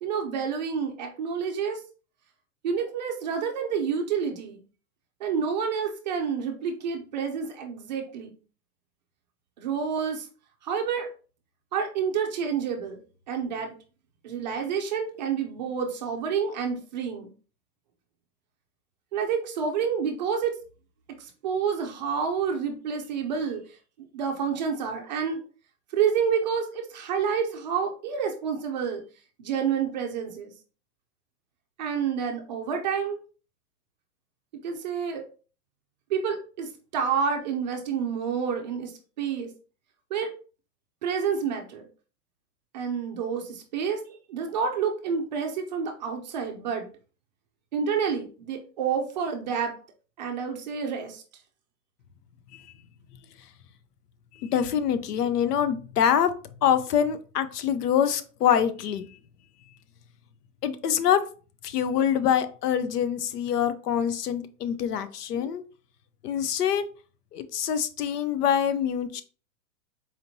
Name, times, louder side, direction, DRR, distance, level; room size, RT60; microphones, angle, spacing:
voice 1, 0.0-1.8 2.6-4.6 5.2-8.3 9.6-10.3 10.6-11.1 11.7-13.0 13.3-13.7 14.2-17.3 19.1-20.6 21.2-23.6 24.1-25.4 25.9-29.0 29.4-30.5 31.8-33.2 34.6-35.2 36.1-38.9 39.2-39.5 40.1-40.3 41.0-41.9 42.7-44.0 44.3-46.9 47.7-49.7 50.2-51.2, right 6 dB, 30° right, 0.4 m, -29 dB
voice 2, 54.4-56.3 56.6-59.1 60.6-61.2 61.6-65.6 66.2-66.8 67.3-69.2, left 9 dB, 85° left, 0.7 m, -25 dB
4.2 x 2.9 x 2.7 m
hypercardioid pair, 155°, 46 cm